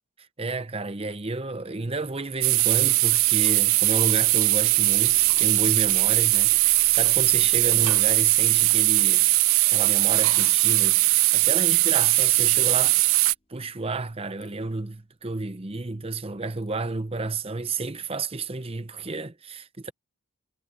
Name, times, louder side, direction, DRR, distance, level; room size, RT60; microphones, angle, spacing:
voice 1, 0.4-11.0 11.3-19.9, right 3 dB, 25° right, 0.8 m, -31 dB
sound 1, 2.4-13.3, right 20 dB, 65° right, 0.4 m, -20 dB
sound 2, 3.4-14.1 14.9-15.0 15.5-15.6, equal, 25° left, 3.2 m, -53 dB
sound 3, 9.7-10.1 10.7-10.9 11.2-11.3 11.6-12.3 13.2-13.3 14.4-14.7 16.6-16.9 18.1-18.4, left 16 dB, 80° left, 6.7 m, -60 dB
head